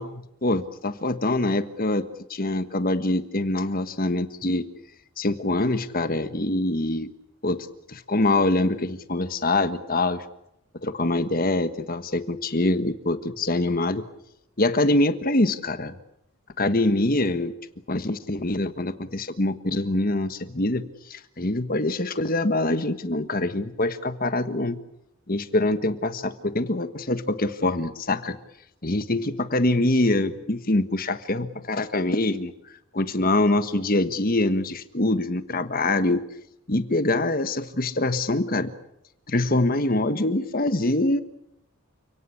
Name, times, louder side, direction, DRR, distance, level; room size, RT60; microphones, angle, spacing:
voice 1, 0.0-4.7 5.2-7.1 7.4-10.2 10.8-14.0 14.6-15.9 16.6-17.5 17.9-20.8 21.1-24.8 25.3-28.4 28.8-32.5 32.9-36.3 36.7-38.7 39.3-41.2, left 2 dB, 40° left, 11 dB, 1.4 m, -24 dB
30.0 x 18.0 x 8.5 m, 0.84 s
head